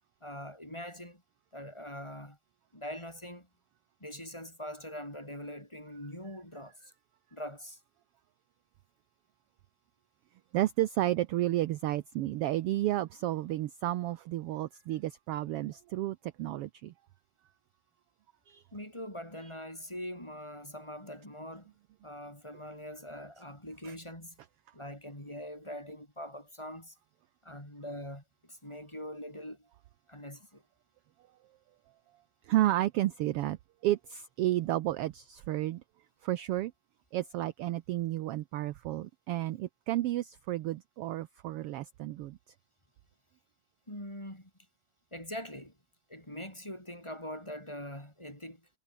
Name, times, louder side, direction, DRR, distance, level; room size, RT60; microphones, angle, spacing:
voice 1, 0.2-1.2 1.5-2.4 2.7-3.5 4.0-6.9 7.3-7.8 18.7-21.7 22.0-24.4 24.7-27.0 27.4-29.7 30.1-30.6 43.9-44.5 45.1-45.8 46.1-48.7, equal, 10° left, 5.4 m, -43 dB
voice 2, 10.5-16.9 18.5-18.6 23.8-23.9 32.4-33.6 33.8-35.8 36.2-36.7 37.1-42.4, right 15 dB, 70° right, 1.4 m, -31 dB
omnidirectional pair, 3.3 m